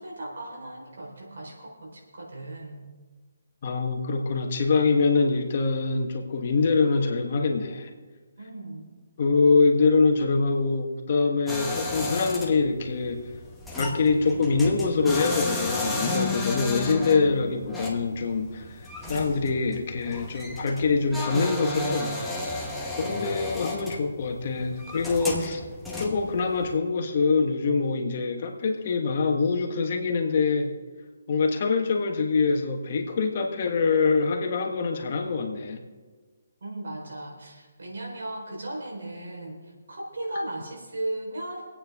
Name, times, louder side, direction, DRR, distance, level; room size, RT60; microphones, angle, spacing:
voice 1, 0.0-2.8 8.4-8.9 36.6-41.7, right 1 dB, 75° right, -1 dB, 4.2 m, -36 dB
voice 2, 3.6-7.9 9.2-13.2 13.8-18.7 19.1-22.1 23.0-25.6 26.0-30.7 31.3-35.8, left 4 dB, 40° left, 3 dB, 1.4 m, -24 dB
sound 1, 11.5-26.8, left 2 dB, ahead, 1.1 m, -33 dB
25.0 x 8.8 x 3.6 m, 1.4 s
hypercardioid pair, 165°, 0 cm